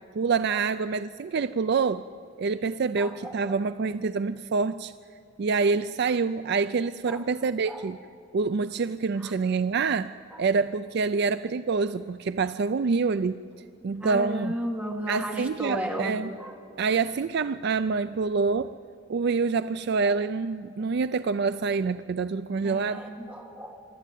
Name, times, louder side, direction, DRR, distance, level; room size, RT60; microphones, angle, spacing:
voice 1, 0.1-2.0 2.4-4.9 5.4-8.0 8.3-10.1 10.4-13.4 13.8-14.5 15.1-16.3 16.8-18.7 19.1-23.0, right 4 dB, 60° right, 12 dB, 0.4 m, -26 dB
voice 2, 3.0-3.6 7.1-7.2 7.7-7.9 9.2-9.3 14.0-16.5 20.0-20.2 22.6-23.8, equal, 10° right, 0 dB, 2.3 m, -34 dB
25.5 x 12.5 x 9.2 m, 2.5 s
head